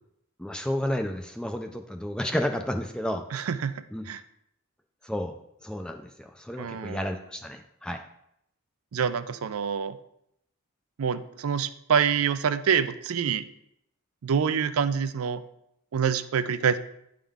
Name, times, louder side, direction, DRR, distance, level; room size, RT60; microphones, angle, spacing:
voice 1, 0.4-3.2 3.9-4.1 5.0-5.4 5.6-8.0, left 1 dB, 5° left, 5 dB, 0.3 m, -31 dB
voice 2, 3.3-3.7 4.1-4.2 6.6-7.0 8.9-10.0 11.0-13.4 14.2-15.4 15.9-16.8, right 7 dB, 85° right, 12 dB, 0.4 m, -26 dB
9.8 x 3.7 x 3.5 m, 0.77 s
head